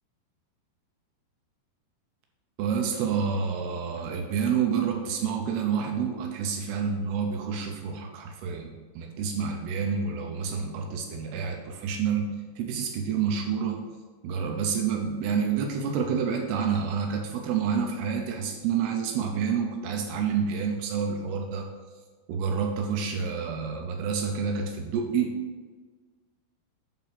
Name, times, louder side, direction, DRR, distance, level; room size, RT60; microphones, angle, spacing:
voice 1, 2.6-13.8 14.2-21.6 22.3-25.3, right 6 dB, 80° right, 2 dB, 2.4 m, -28 dB
8.8 x 3.9 x 5.8 m, 1.4 s
omnidirectional pair, 5.4 m